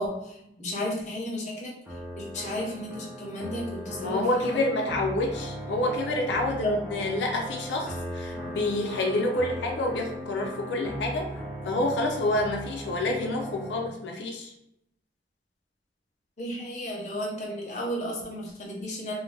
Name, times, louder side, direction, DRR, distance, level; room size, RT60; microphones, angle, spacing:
voice 1, 0.0-1.7 2.1-4.6 6.6-6.8 16.4-19.2, equal, 40° left, -3 dB, 0.7 m, -33 dB
sound 1, 1.9-13.9, equal, ahead, 0.5 m, -38 dB
voice 2, 4.0-14.5, left 2 dB, 90° left, 0 dB, 0.5 m, -28 dB
2.5 x 2.1 x 3.2 m, 0.80 s
head